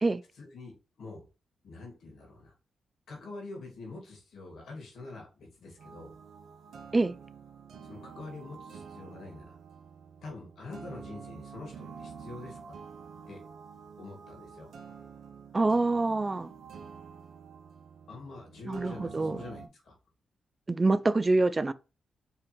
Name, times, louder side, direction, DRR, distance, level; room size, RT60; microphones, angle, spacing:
voice 1, 0.4-1.2 1.6-2.5 3.1-6.1 7.8-9.6 10.2-12.7 13.3-13.4 14.0-14.7 18.1-20.0, left 3 dB, 75° left, 2.1 m, -45 dB
sound 1, 5.8-19.7, right 6 dB, 75° right, 0.7 m, -48 dB
voice 2, 15.5-16.5 18.7-19.4 20.7-21.7, right 2 dB, 30° right, 0.3 m, -26 dB
4.5 x 3.3 x 3.2 m
cardioid pair, 70°, 0 cm